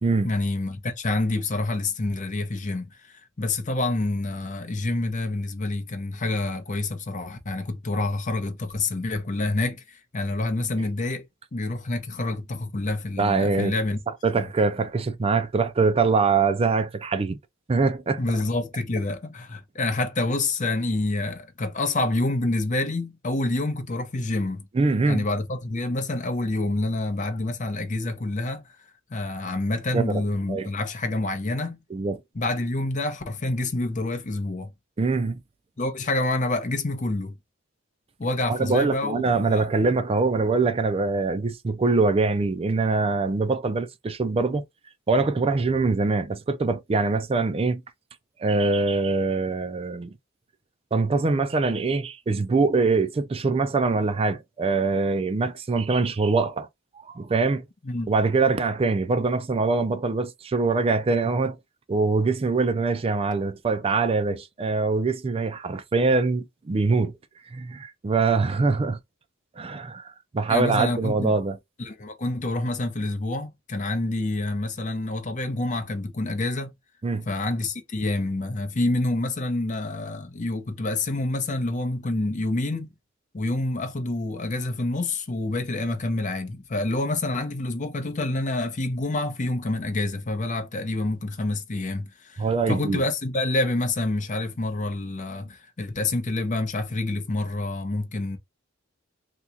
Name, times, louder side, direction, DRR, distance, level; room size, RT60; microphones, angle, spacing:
voice 1, 0.2-11.2 11.5-14.0 14.4-14.5 18.2-24.7 25.1-28.6 29.1-31.8 32.3-34.7 35.8-37.4 38.2-39.2 39.5-39.7 57.8-58.1 70.5-71.4 71.8-76.7 77.3-82.9 83.3-98.4, left 2 dB, 40° left, 0.7 m, -27 dB
voice 2, 13.2-13.7 14.2-17.4 17.7-18.2 24.7-25.2 29.9-30.2 30.5-30.7 31.9-32.2 35.0-35.4 38.5-44.6 45.1-47.8 48.4-50.1 50.9-56.7 56.9-57.6 58.1-61.6 61.9-67.1 67.5-69.0 69.6-71.6 77.0-77.2 92.4-93.0, right 3 dB, 30° right, 0.4 m, -23 dB
2.9 x 2.3 x 3.6 m
head